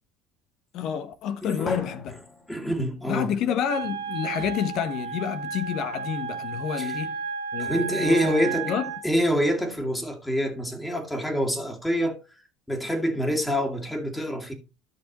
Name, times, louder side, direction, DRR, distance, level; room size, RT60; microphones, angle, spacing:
voice 1, 0.7-2.2 3.1-7.2 7.5-8.9, left 8 dB, 60° left, 1.0 m, -29 dB
voice 2, 1.4-1.7 2.5-3.3 6.8-6.9 7.6-8.7 9.0-12.2 12.7-14.5, equal, 10° left, 2.2 m, -26 dB
Drum, 1.7-3.6, left 2 dB, 25° left, 3.3 m, -40 dB
Wind instrument woodwind instrument, 3.7-9.0, right 6 dB, 85° right, 1.3 m, -33 dB
13.5 x 5.8 x 3.0 m
hypercardioid pair, 70°, 0 cm